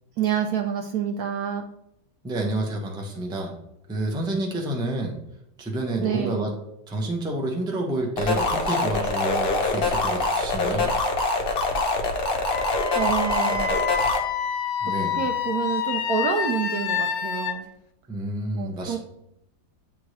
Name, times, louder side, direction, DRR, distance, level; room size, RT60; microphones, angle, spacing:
voice 1, 0.2-1.6 6.0-6.5 12.9-13.7 14.8-17.7 18.5-19.0, right 7 dB, 70° right, 4 dB, 0.9 m, -28 dB
voice 2, 2.2-3.5 3.9-5.1 5.6-6.5 6.9-10.9 14.8-15.2 18.1-19.0, right 1 dB, 5° right, 0 dB, 0.5 m, -29 dB
sound 1, 8.2-14.2, left 3 dB, 50° left, 0.7 m, -24 dB
Wind instrument woodwind instrument, 12.5-17.6, left 7 dB, 70° left, 1.2 m, -27 dB
9.2 x 3.5 x 3.2 m, 0.81 s
omnidirectional pair, 2.0 m